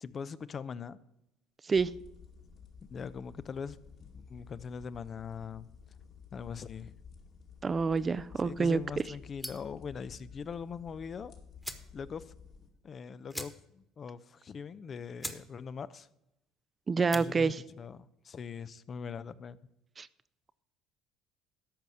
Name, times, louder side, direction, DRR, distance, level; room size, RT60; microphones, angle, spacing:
voice 1, 0.0-1.0 2.9-5.7 6.3-7.0 8.4-11.4 11.9-12.3 12.8-16.1 17.1-19.6, left 6 dB, 40° left, 0.6 m, -42 dB
sound 1, 1.7-12.7, left 6 dB, 55° left, 2.4 m, -53 dB
voice 2, 7.6-8.8 16.9-17.6 20.0-20.1, right 5 dB, 30° right, 0.5 m, -27 dB
sound 2, 9.4-9.8 11.1-11.2 11.6-11.9 12.3-12.4 12.6-12.8 13.3-13.9 14.2-14.3 14.8-14.9 15.2-15.5 15.8-16.2 16.9-17.3, equal, ahead, 1.3 m, -42 dB
13.5 x 5.4 x 7.8 m
supercardioid pair, 80°, 0 cm